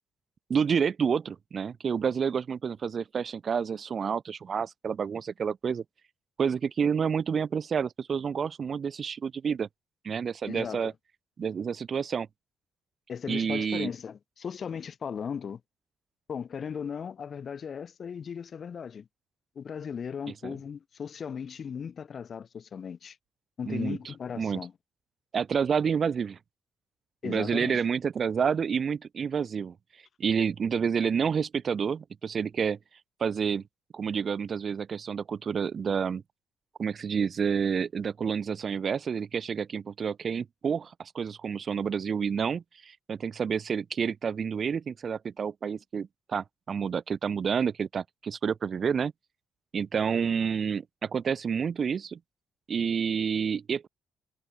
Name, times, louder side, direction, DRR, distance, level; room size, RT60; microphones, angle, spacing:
voice 1, 0.5-5.8 6.4-9.7 10.0-10.9 11.4-12.3 13.3-13.9 20.4-20.5 23.7-24.0 24.4-24.6 25.3-26.4 27.2-29.7 30.2-32.8 33.2-33.6 33.9-36.2 36.8-49.1 49.7-52.2 52.7-53.9, right 6 dB, 45° right, 2.4 m, -29 dB
voice 2, 10.5-10.9 13.1-15.6 16.3-19.1 19.6-23.2 23.6-24.7 27.2-27.8, left 7 dB, 50° left, 6.0 m, -37 dB
cardioid pair, 90°, 0 cm